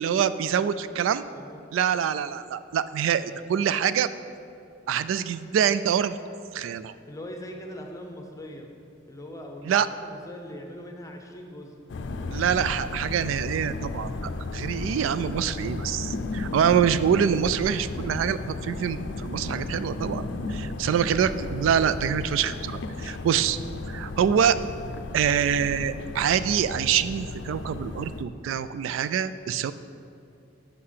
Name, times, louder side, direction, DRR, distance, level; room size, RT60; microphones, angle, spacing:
voice 1, 0.0-1.2 1.7-4.1 4.9-6.2 6.5-6.9 9.7-9.9 12.3-23.6 23.9-24.6 25.1-29.7, right 8 dB, 85° right, 14 dB, 0.3 m, -25 dB
voice 2, 7.1-8.7 9.1-11.7, equal, 15° left, 3 dB, 0.8 m, -41 dB
sound 1, 11.9-28.2, left 3 dB, 65° left, 0.5 m, -34 dB
6.6 x 5.7 x 5.6 m, 2.6 s
head